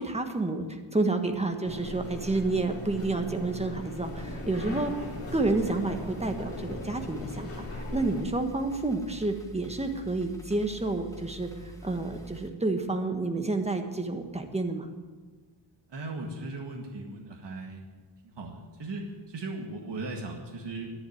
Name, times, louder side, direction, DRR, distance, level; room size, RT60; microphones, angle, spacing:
voice 1, 0.0-4.9 5.3-14.9, right 2 dB, 15° right, 5 dB, 1.3 m, -30 dB
sound 1, 1.6-8.2, left 2 dB, 30° left, 2.4 m, -39 dB
sound 2, 4.0-12.5, right 1 dB, 5° left, 1.7 m, -47 dB
voice 2, 15.9-17.8 18.2-20.9, right 2 dB, 55° right, 1 dB, 1.9 m, -38 dB
11.0 x 11.0 x 9.4 m, 1.4 s
wide cardioid pair, 135°, 49 cm